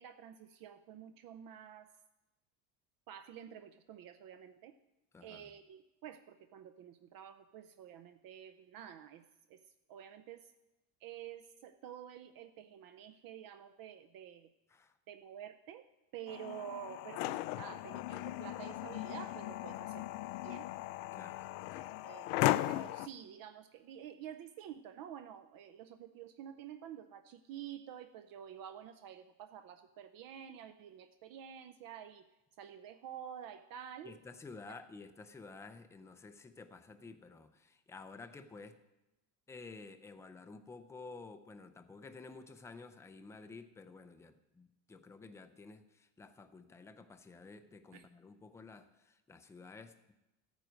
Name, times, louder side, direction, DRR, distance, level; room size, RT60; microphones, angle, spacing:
voice 1, 0.0-1.9 3.1-4.7 5.2-9.2 9.5-9.6 9.9-10.5 11.0-14.5 15.1-15.9 16.1-20.1 20.4-20.7 22.0-32.2 32.6-34.2 34.7-34.8 47.9-48.1, right 9 dB, 50° right, 9 dB, 0.6 m, -49 dB
voice 2, 5.1-5.5 14.7-14.9 21.1-21.9 34.0-38.8 39.5-50.1, left 4 dB, 5° left, 9 dB, 0.4 m, -52 dB
sound 1, 16.3-23.1, left 16 dB, 85° left, 0.6 m, -37 dB
14.0 x 9.2 x 5.1 m, 0.98 s
cardioid pair, 145°, 46 cm